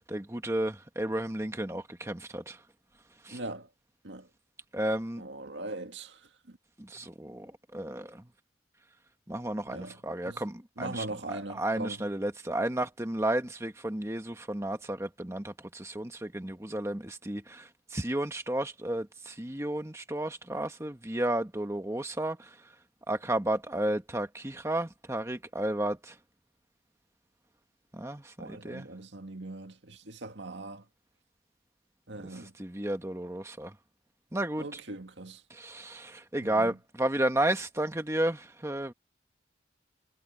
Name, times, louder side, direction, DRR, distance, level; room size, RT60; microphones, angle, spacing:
voice 1, 0.1-2.6 3.2-3.4 4.7-5.2 6.8-8.2 9.3-22.5 23.1-26.1 27.9-28.9 32.2-33.7 34.3-34.6 35.5-38.9, right 1 dB, 15° right, 1.2 m, -32 dB
voice 2, 3.3-3.7 4.0-4.3 5.2-6.2 6.5-6.6 9.7-10.0 10.3-10.4 10.8-12.0 28.4-30.8 32.1-32.5 34.6-35.4 36.4-36.8, right 2 dB, 70° right, 2.0 m, -40 dB
head